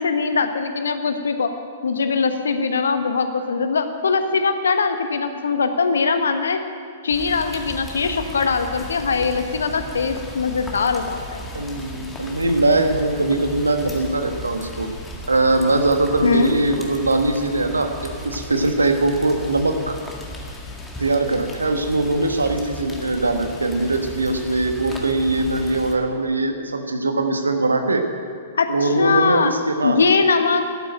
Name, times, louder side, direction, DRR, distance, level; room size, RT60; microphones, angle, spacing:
voice 1, 0.0-1.5 1.8-6.6 7.0-11.5 16.2-16.6 28.5-29.5 29.8-30.6, left 4 dB, 70° left, 8 dB, 1.2 m, -21 dB
Rain, 7.1-25.9, left 1 dB, 10° left, 1.8 m, -36 dB
voice 2, 11.5-14.9 15.3-17.9 18.2-20.0 21.0-28.0 28.7-30.0, right 2 dB, 80° right, 6 dB, 1.3 m, -21 dB
13.0 x 9.0 x 9.1 m, 2.2 s
figure-of-eight pair, 110°, 0 cm